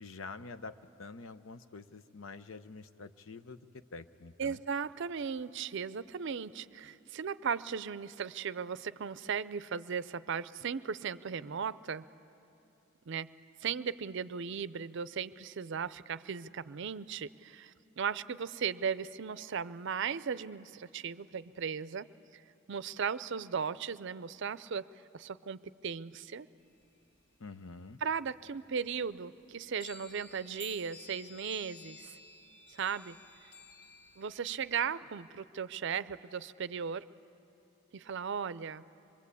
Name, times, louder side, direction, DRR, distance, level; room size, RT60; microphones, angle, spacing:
voice 1, 0.0-3.6 3.9-4.6 27.4-28.0, left 3 dB, 80° left, 11 dB, 0.7 m, -47 dB
voice 2, 4.4-12.1 13.1-13.3 13.6-22.1 22.3-22.4 22.7-24.8 25.1-26.5 28.0-32.2 32.7-33.2 34.2-37.1 37.9-38.8, right 6 dB, 65° right, 16 dB, 0.5 m, -37 dB
sound 1, 26.7-28.1 28.5-28.6 28.8-34.9, left 4 dB, 65° left, 2.4 m, -53 dB
25.5 x 22.5 x 8.4 m, 2.8 s
head